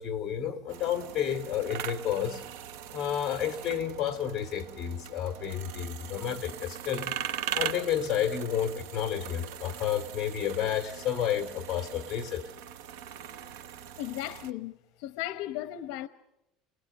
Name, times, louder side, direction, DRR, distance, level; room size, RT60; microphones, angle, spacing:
voice 1, 0.0-2.4 2.9-7.1 7.5-12.5, left 9 dB, 30° left, 2.8 m, -31 dB
sound 1, 0.7-14.5, right 10 dB, 85° right, 1.0 m, -40 dB
voice 2, 14.0-16.1, left 14 dB, 70° left, 1.0 m, -36 dB
30.0 x 20.0 x 6.6 m
cardioid pair, 170°, 0 cm